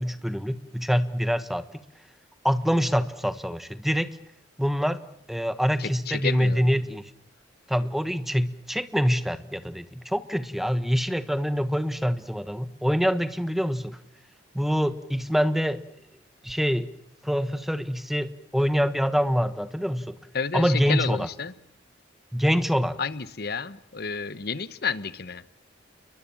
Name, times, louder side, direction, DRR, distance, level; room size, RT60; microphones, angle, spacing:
voice 1, 0.0-1.6 2.4-4.1 4.6-5.0 5.3-7.1 7.7-14.0 14.5-15.8 16.4-16.9 17.2-20.1 20.5-21.3 22.3-23.0, equal, ahead, 12 dB, 1.3 m, -25 dB
voice 2, 5.8-6.8 20.3-21.5 23.0-25.4, left 5 dB, 55° left, 15 dB, 1.1 m, -31 dB
29.5 x 22.5 x 7.2 m, 0.72 s
head